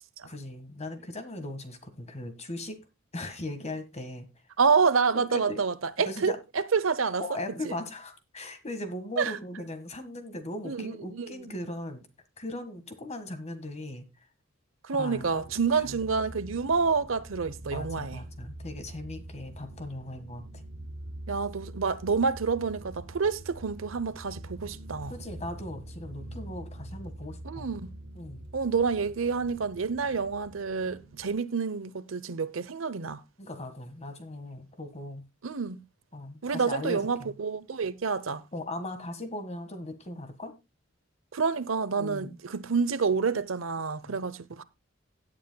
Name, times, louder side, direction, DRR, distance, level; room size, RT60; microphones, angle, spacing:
voice 1, 0.2-2.9 3.1-4.3 5.1-5.6 6.0-6.4 7.2-12.1 12.4-14.1 14.9-15.4 15.7-16.0 17.7-20.6 25.1-27.7 28.2-28.4 33.4-35.2 36.1-37.3 38.5-40.5 42.0-42.4 44.1-44.2, left 1 dB, 35° left, 1.6 m, -38 dB
voice 2, 4.6-7.2 7.6-7.8 9.2-9.3 10.6-11.3 14.8-18.2 21.3-25.1 27.4-27.9 28.5-33.2 35.4-35.8 36.4-38.4 41.3-44.6, right 5 dB, 85° right, 0.8 m, -28 dB
sound 1, 15.1-31.3, right 1 dB, 65° right, 4.1 m, -44 dB
17.5 x 8.5 x 2.3 m
head